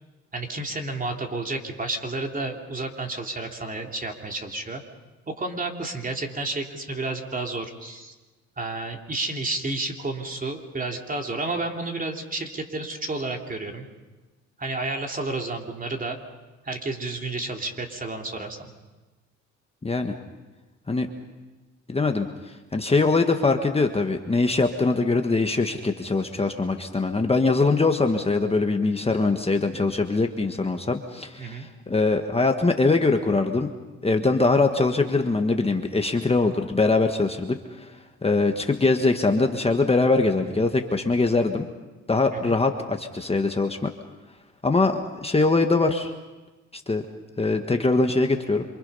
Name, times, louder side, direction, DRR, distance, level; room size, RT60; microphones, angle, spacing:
voice 1, 0.3-4.8 5.3-8.1 8.6-13.9 14.6-16.2 16.6-18.7 31.4-31.7 42.3-42.6, right 2 dB, 30° right, 2 dB, 3.1 m, -31 dB
voice 2, 19.8-20.2 20.9-21.1 21.9-33.7 34.0-37.9 38.2-41.7 42.1-43.9 44.6-46.1 46.7-47.0 47.4-48.6, left 3 dB, 20° left, 5 dB, 1.5 m, -22 dB
27.5 x 24.5 x 5.6 m, 1.2 s
cardioid pair, 90°, 30 cm